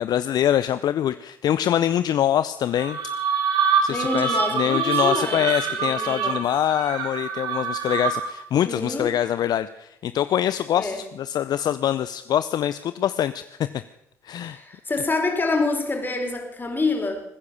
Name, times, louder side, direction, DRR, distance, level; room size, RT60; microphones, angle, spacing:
voice 1, 0.0-3.0 3.8-13.7 14.2-14.6, left 10 dB, 55° left, 14 dB, 0.6 m, -24 dB
sound 1, 2.7-8.4, right 6 dB, 65° right, 2.6 m, -25 dB
voice 2, 3.9-6.4 8.5-9.1 10.7-11.0 14.4-17.2, left 3 dB, 25° left, 2 dB, 4.7 m, -27 dB
21.0 x 9.7 x 6.9 m, 0.82 s
hypercardioid pair, 55°, 8 cm